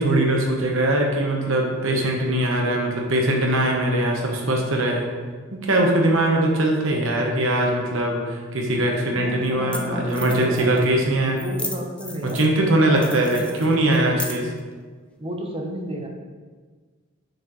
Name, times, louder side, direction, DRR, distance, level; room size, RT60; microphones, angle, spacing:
voice 1, 0.0-5.1 5.5-11.4 12.2-14.5, right 1 dB, 70° right, 0 dB, 1.2 m, -21 dB
sound 1, 8.6-8.7 9.5-9.6 9.7-9.8 10.1-10.9 11.4-12.6 13.0-14.6, left 2 dB, 5° left, 0.5 m, -35 dB
voice 2, 9.1-10.9 11.2-14.4 15.2-16.1, equal, 30° right, 1 dB, 1.0 m, -32 dB
6.9 x 6.5 x 3.2 m, 1.5 s
head